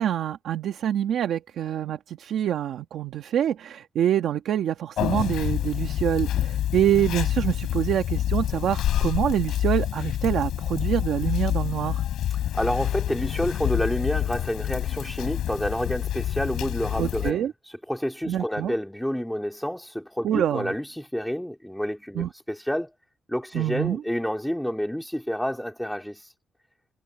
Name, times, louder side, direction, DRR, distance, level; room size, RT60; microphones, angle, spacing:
voice 1, 0.0-12.0 17.0-17.5 18.3-18.7 20.2-20.7 22.1-22.3 23.5-24.0, right 10 dB, 70° right, 1.5 m, -26 dB
Conversation, 5.0-17.3, left 12 dB, 85° left, 7.5 m, -27 dB
voice 2, 12.3-22.9 23.3-26.3, equal, ahead, 2.8 m, -29 dB
cardioid pair, 175°, 0 cm